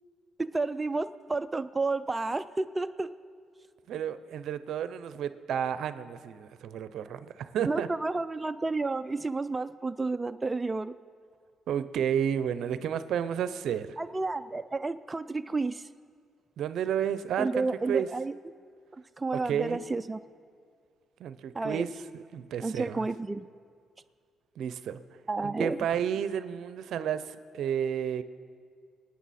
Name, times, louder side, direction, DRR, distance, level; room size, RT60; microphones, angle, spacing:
voice 1, 0.5-3.1 7.7-10.9 14.0-15.9 17.4-18.3 18.9-20.2 21.5-21.8 22.6-23.5 25.3-25.8, right 3 dB, 20° right, 10 dB, 0.3 m, -31 dB
voice 2, 3.9-7.9 11.7-14.0 16.6-18.1 19.5-19.8 21.2-21.9 22.3-23.1 24.6-25.0 25.4-28.2, right 9 dB, 75° right, 13 dB, 0.6 m, -31 dB
23.0 x 9.5 x 4.2 m, 2.2 s
cardioid pair, 90°, 0 cm